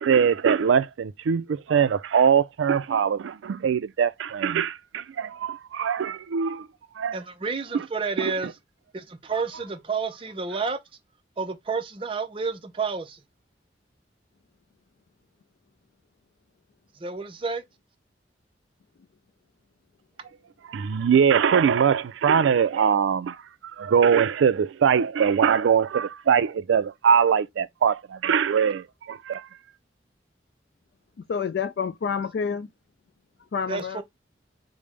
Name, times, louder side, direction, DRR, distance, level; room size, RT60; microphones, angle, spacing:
voice 1, 0.0-6.7 7.0-7.2 8.2-8.3 20.7-23.4 23.8-29.5, right 7 dB, 90° right, 0.3 m, -22 dB
voice 2, 7.1-8.6 8.9-10.8 11.4-13.2 16.9-17.6 33.7-34.0, right 4 dB, 30° right, 0.5 m, -30 dB
voice 3, 31.2-32.7 33.4-34.0, left 6 dB, 60° left, 0.3 m, -29 dB
5.0 x 2.1 x 3.1 m
head